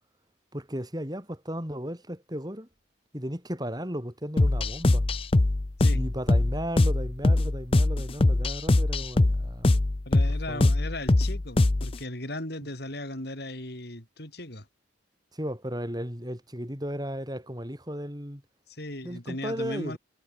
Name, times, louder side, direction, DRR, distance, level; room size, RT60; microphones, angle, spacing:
voice 1, 0.5-2.7 3.1-5.0 5.9-9.8 10.5-10.7 15.3-18.4 19.0-20.0, equal, 20° right, 7.5 m, -35 dB
sound 1, 4.4-12.0, left 2 dB, 30° left, 0.5 m, -23 dB
voice 2, 10.0-14.7 18.7-20.0, left 1 dB, 55° left, 5.0 m, -37 dB
head